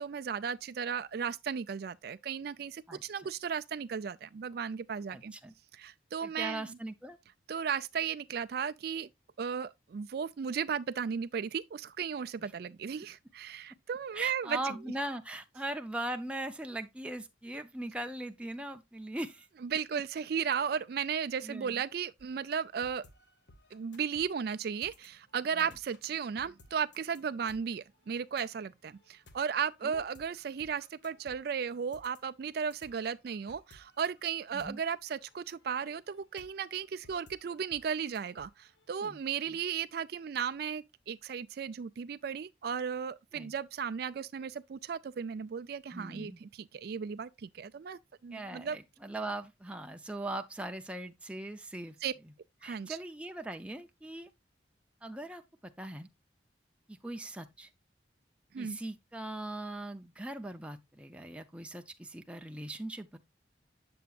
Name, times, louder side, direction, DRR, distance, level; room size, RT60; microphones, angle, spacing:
voice 1, 0.0-5.3 5.7-6.6 7.5-9.1 9.4-14.7 19.6-23.0 23.7-48.8 52.0-52.1 52.6-53.0 58.5-58.8, right 7 dB, 55° right, 0.3 m, -35 dB
voice 2, 5.1-5.5 6.2-7.2 12.4-12.5 14.1-19.5 21.4-21.8 25.5-25.7 29.8-30.0 34.5-34.8 39.0-39.2 39.5-39.6 43.3-43.5 45.9-46.4 48.3-52.0 52.2-52.3 52.6-54.3 55.0-55.4 55.8-56.1 56.9-57.7 58.6-63.2, right 1 dB, 5° right, 0.6 m, -40 dB
sound 1, 22.2-39.1, left 2 dB, 60° left, 1.2 m, -61 dB
8.5 x 6.9 x 2.4 m
head